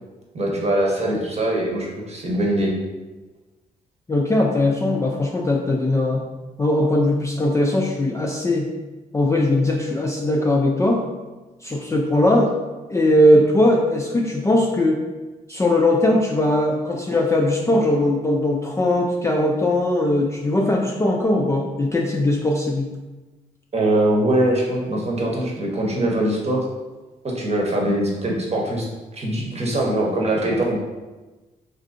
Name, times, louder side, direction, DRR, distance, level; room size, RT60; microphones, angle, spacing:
voice 1, 0.3-2.7 23.7-26.7 27.2-28.8 29.1-30.8, right 1 dB, 35° right, -2 dB, 0.9 m, -22 dB
voice 2, 4.1-6.3 6.6-8.7 9.1-11.0 11.6-12.5 12.9-15.0 15.5-22.9, left 1 dB, 15° left, -1 dB, 0.4 m, -19 dB
3.2 x 2.5 x 2.5 m, 1.2 s
hypercardioid pair, 40°, 19 cm